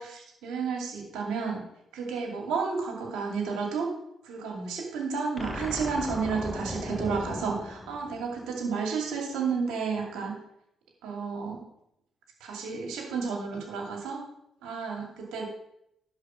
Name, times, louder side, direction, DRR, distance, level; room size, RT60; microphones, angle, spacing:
voice 1, 0.0-1.6 1.9-3.9 4.2-10.3 11.0-11.6 12.4-14.2 14.6-15.5, right 5 dB, 70° right, 1 dB, 2.3 m, -31 dB
sound 1, 5.4-8.7, left 1 dB, 20° left, 1.8 m, -37 dB
11.0 x 4.6 x 6.2 m, 0.78 s
hypercardioid pair, 40°, 0 cm